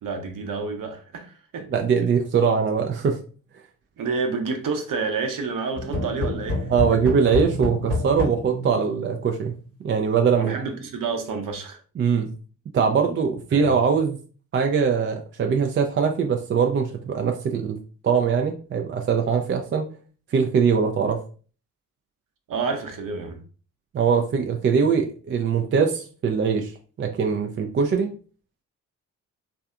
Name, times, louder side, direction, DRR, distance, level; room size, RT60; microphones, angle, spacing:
voice 1, 0.0-1.7 4.0-7.0 10.3-11.8 13.5-13.7 22.5-23.4, right 4 dB, 50° right, 0.8 m, -29 dB
voice 2, 1.7-3.2 6.7-9.5 9.8-10.6 12.0-12.3 12.7-14.2 14.5-17.8 18.0-19.9 20.3-21.2 23.9-26.7 27.0-28.1, right 6 dB, 30° right, 0.4 m, -22 dB
sound 1, 5.7-9.5, left 2 dB, 80° right, 1.0 m, -28 dB
3.4 x 2.2 x 2.4 m
hypercardioid pair, 40°, 43 cm